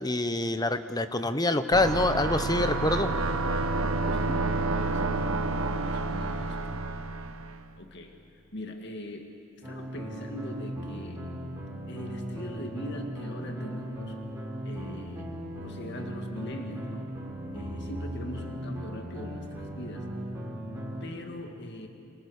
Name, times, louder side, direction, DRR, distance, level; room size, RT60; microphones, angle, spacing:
voice 1, 0.0-3.1, left 2 dB, 20° left, 11 dB, 1.0 m, -26 dB
sound 1, 1.7-7.7, right 2 dB, 75° right, 1.3 m, -29 dB
voice 2, 4.1-6.6 7.8-11.2 11.9-14.2 14.6-17.2 17.5-20.1 21.0-21.9, left 1 dB, 55° left, 4 dB, 2.1 m, -41 dB
sound 2, 9.6-21.1, equal, 15° right, 6.6 m, -37 dB
29.0 x 27.0 x 6.6 m, 2.9 s
head